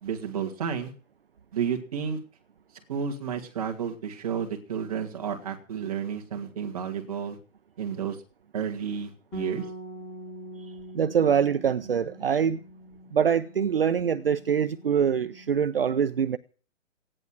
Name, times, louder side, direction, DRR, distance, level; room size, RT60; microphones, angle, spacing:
voice 1, 0.0-0.9 1.5-2.2 2.9-7.4 7.8-8.2 8.5-9.7, right 7 dB, 30° right, 2.3 m, -31 dB
Bass guitar, 9.3-15.6, right 2 dB, 5° left, 2.7 m, -43 dB
voice 2, 10.9-12.6 13.1-16.4, right 7 dB, 45° right, 0.7 m, -24 dB
16.0 x 11.0 x 6.0 m
hypercardioid pair, 175°, 39 cm